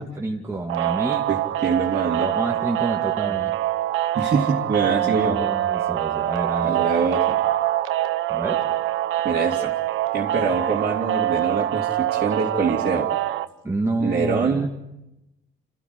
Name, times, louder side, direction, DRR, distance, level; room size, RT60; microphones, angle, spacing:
voice 1, 0.0-1.3 2.2-3.6 5.0-6.9 8.3-8.6 13.6-14.7, right 2 dB, 15° right, -1 dB, 2.3 m, -28 dB
sound 1, 0.7-13.5, right 13 dB, 85° right, 1.0 m, -24 dB
voice 2, 1.3-2.3 4.1-5.4 6.6-7.4 9.2-9.7 10.1-13.1 14.0-14.7, right 4 dB, 50° right, -3 dB, 2.8 m, -24 dB
27.0 x 15.0 x 9.6 m, 0.92 s
cardioid pair, 90°, 20 cm